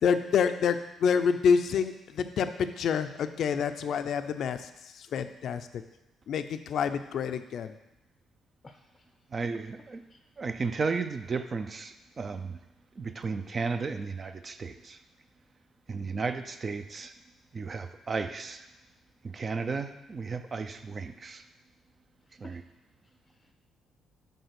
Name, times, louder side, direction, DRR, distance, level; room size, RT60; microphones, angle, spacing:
voice 1, 0.0-5.7 6.3-7.8, left 6 dB, 65° left, 10 dB, 0.4 m, -27 dB
voice 2, 8.6-9.1 10.1-10.2 22.2-22.6 23.0-23.5, left 2 dB, 25° left, 5 dB, 0.6 m, -55 dB
voice 3, 9.3-10.0 10.4-12.6 13.0-15.0 15.9-17.1 17.5-18.7 19.2-21.4 22.4-22.6, right 4 dB, 35° right, 9 dB, 0.5 m, -34 dB
5.5 x 4.4 x 5.9 m, 0.96 s
cardioid pair, 90°, 0 cm